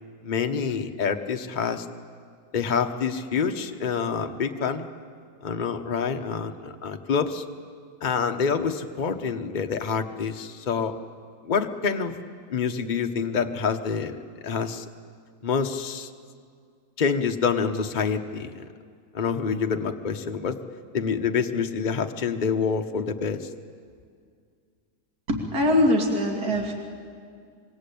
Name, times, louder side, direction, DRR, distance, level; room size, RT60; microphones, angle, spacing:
voice 1, 0.2-1.8 2.5-4.9 5.4-7.4 8.0-10.9 11.4-12.2 12.5-14.2 14.4-14.9 15.4-16.1 17.0-18.7 19.1-20.6 20.9-23.5, left 6 dB, 30° left, 5 dB, 1.0 m, -27 dB
voice 2, 25.3-26.7, left 1 dB, 50° right, 2 dB, 3.2 m, -22 dB
26.0 x 24.0 x 8.6 m, 2.1 s
omnidirectional pair, 2.1 m